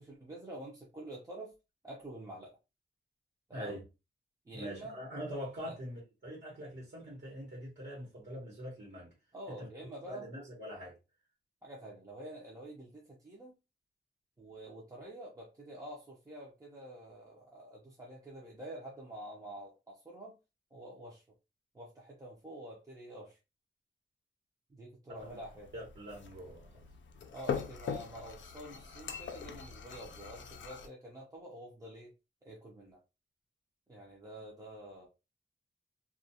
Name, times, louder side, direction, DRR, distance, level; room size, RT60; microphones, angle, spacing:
voice 1, 0.0-1.5 1.8-2.6 3.5-3.8 4.4-5.0 5.6-5.7 9.3-10.3 11.6-13.5 14.4-20.4 20.7-21.2 21.7-23.4 24.7-25.7 27.3-32.1 32.4-33.0 33.9-35.1, right 1 dB, 20° right, 0.6 m, -48 dB
voice 2, 4.5-9.1 9.6-9.7 10.1-10.9 25.2-25.4 25.7-26.8, equal, 70° right, 1.1 m, -43 dB
sound 1, 25.2-30.9, left 7 dB, 80° left, 0.4 m, -42 dB
2.3 x 2.2 x 2.7 m
wide cardioid pair, 160°, 19 cm